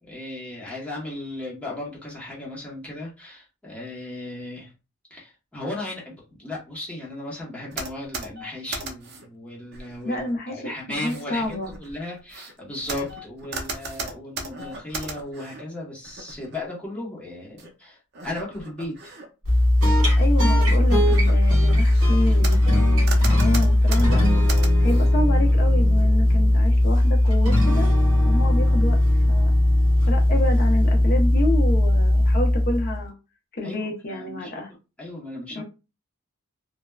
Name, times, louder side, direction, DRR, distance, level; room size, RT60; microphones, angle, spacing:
voice 1, 0.0-4.7 5.1-19.1 33.6-34.5 35.0-35.6, left 1 dB, 5° left, -6 dB, 0.8 m, -36 dB
sound 1, 7.7-9.3 9.7-10.3 10.9-15.6 16.0-16.6 17.6-17.7 18.1-19.3 19.6-20.0 20.5-20.6 21.0-22.8 23.1-25.1, right 3 dB, 45° right, 0.5 m, -36 dB
voice 2, 10.0-11.7 20.2-24.2 24.8-27.9 28.2-29.5 30.1-33.1 33.5-34.7 35.6-35.7, left 1 dB, 40° left, 1 dB, 0.7 m, -29 dB
sound 2, 19.4-33.0, left 1 dB, 80° right, 1.4 m, -18 dB
3.2 x 2.1 x 2.2 m, 0.30 s
head